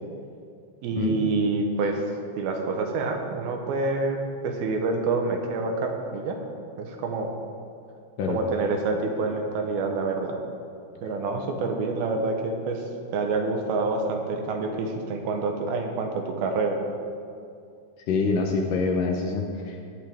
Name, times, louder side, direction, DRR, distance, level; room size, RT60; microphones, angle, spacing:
voice 1, 0.8-2.0 2.4-4.2 4.4-6.4 6.8-7.3 8.3-10.4 11.0-12.8 13.1-16.8, right 3 dB, 80° right, 3 dB, 2.8 m, -27 dB
voice 2, 18.1-19.8, left 4 dB, 70° left, 2 dB, 2.3 m, -25 dB
19.0 x 8.9 x 3.6 m, 2.4 s
omnidirectional pair, 4.4 m